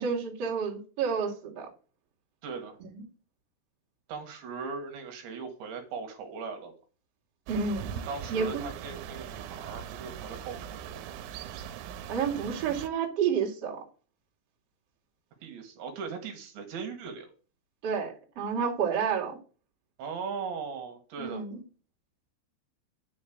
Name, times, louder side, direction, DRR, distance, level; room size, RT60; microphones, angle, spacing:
voice 1, 0.0-1.7 2.9-3.0 7.5-8.0 8.3-8.6 12.1-13.8 17.8-19.4 21.2-21.6, right 6 dB, 40° right, -2 dB, 2.8 m, -30 dB
voice 2, 2.4-2.8 4.1-6.7 8.1-11.1 15.4-17.3 20.0-21.4, right 5 dB, 70° right, 4 dB, 3.7 m, -39 dB
sound 1, 7.5-12.9, right 9 dB, 85° right, 3.2 m, -40 dB
9.7 x 5.3 x 7.8 m, 0.38 s
omnidirectional pair, 5.6 m